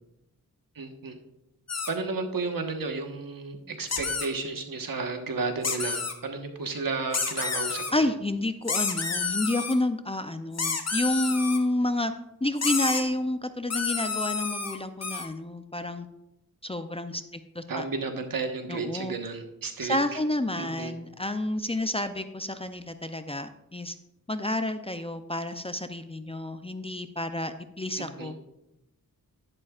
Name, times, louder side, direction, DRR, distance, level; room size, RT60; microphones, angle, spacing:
voice 1, 0.7-1.2 1.9-8.1 17.7-20.0 20.6-20.9 28.0-28.3, right 4 dB, 75° right, 5 dB, 1.4 m, -33 dB
sound 1, 1.7-1.9 3.9-4.3 5.6-6.1 7.1-7.9 8.7-9.7 10.5-11.6 12.6-13.0 13.7-15.3, left 4 dB, 45° left, 1.1 m, -29 dB
voice 2, 7.9-12.1 12.4-16.1 16.6-17.8 18.7-19.1 19.8-23.9 24.3-28.4, left 1 dB, 15° left, 9 dB, 0.5 m, -30 dB
11.0 x 11.0 x 2.4 m, 0.90 s
wide cardioid pair, 95°, 35 cm